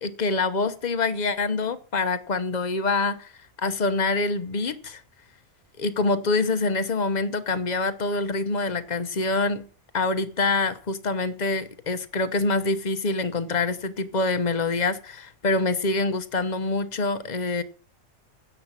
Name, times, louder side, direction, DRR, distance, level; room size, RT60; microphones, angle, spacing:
voice 1, 0.0-3.3 3.6-5.0 5.8-9.7 9.9-17.6, left 3 dB, 35° left, 11 dB, 0.9 m, -25 dB
10.0 x 8.0 x 7.4 m, 0.41 s
omnidirectional pair, 1.5 m